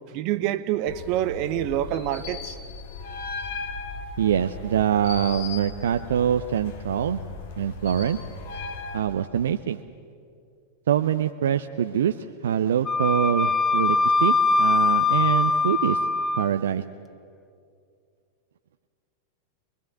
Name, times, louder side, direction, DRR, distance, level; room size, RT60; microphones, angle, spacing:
voice 1, 0.1-2.6, right 12 dB, 45° right, 1.1 m, -27 dB
sound 1, 0.9-9.0, left 4 dB, 50° left, 2.6 m, -37 dB
voice 2, 4.2-7.2 7.6-8.2 8.9-9.8 10.9-16.1 16.3-16.8, right 9 dB, 60° right, 0.6 m, -24 dB
Wind instrument woodwind instrument, 12.9-16.5, left 3 dB, 15° left, 0.7 m, -22 dB
24.0 x 22.0 x 8.4 m
figure-of-eight pair, 90°, 0 cm